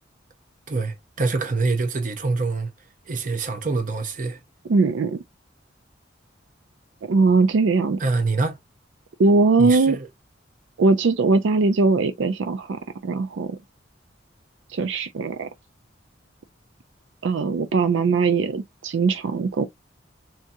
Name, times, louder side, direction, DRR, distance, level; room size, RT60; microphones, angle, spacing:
voice 1, 0.7-2.7 3.1-4.4 8.0-8.6 9.6-10.1, right 3 dB, 45° right, 0.7 m, -25 dB
voice 2, 4.7-5.2 7.0-8.0 9.2-10.0 10.8-13.6 14.7-15.5 17.2-19.7, right 3 dB, 75° right, 0.4 m, -20 dB
3.5 x 2.8 x 2.7 m
head